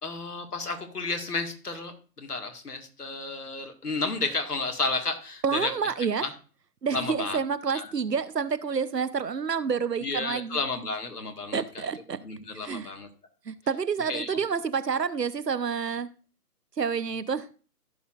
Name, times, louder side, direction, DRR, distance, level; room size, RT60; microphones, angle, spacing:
voice 1, 0.0-5.7 6.2-6.3 6.9-7.4 7.7-7.9 10.0-11.9 12.2-13.1 14.1-14.4, left 3 dB, 70° left, 2.0 m, -32 dB
voice 2, 5.4-6.3 6.8-10.6 11.5-12.2 12.5-12.9 13.5-16.1 16.8-17.5, right 6 dB, 80° right, 0.9 m, -28 dB
15.0 x 6.3 x 2.4 m
figure-of-eight pair, 150°, 48 cm